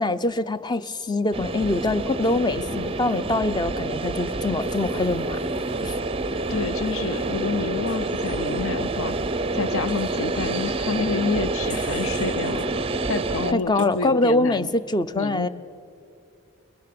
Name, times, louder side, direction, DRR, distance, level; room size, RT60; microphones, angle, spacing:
voice 1, 0.0-5.4 5.8-5.9 13.5-15.5, left 2 dB, 20° left, 13 dB, 0.6 m, -24 dB
sound 1, 1.3-13.5, right 2 dB, 25° right, 0.5 m, -27 dB
Wild animals, 1.7-3.2 4.6-6.6 7.9-8.6 9.9-10.6 11.7-12.7 13.8-13.9, left 3 dB, 35° left, 3.1 m, -49 dB
voice 2, 6.5-9.1 9.5-12.7 13.1-14.7 15.2-15.5, left 4 dB, 65° left, 14 dB, 0.7 m, -28 dB
28.0 x 22.0 x 6.8 m, 2.5 s
head